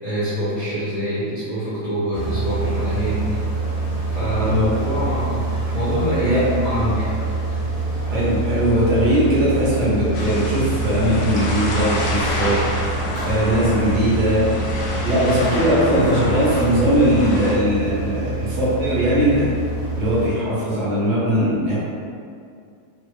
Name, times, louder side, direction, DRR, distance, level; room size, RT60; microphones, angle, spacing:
voice 1, 0.0-3.4 4.1-7.2, equal, 45° left, -12 dB, 0.5 m, -25 dB
sound 1, 2.1-20.3, right 3 dB, 60° right, 1.3 m, -26 dB
voice 2, 6.2-6.9 8.1-12.6 13.2-14.4 15.0-19.5 20.0-21.8, equal, 80° right, -9 dB, 1.5 m, -20 dB
sound 2, 10.1-17.5, left 1 dB, 75° left, 1.2 m, -27 dB
Clapping, 13.1-15.0, equal, 10° right, 0.9 m, -38 dB
3.7 x 2.1 x 3.0 m, 2.3 s
omnidirectional pair, 1.7 m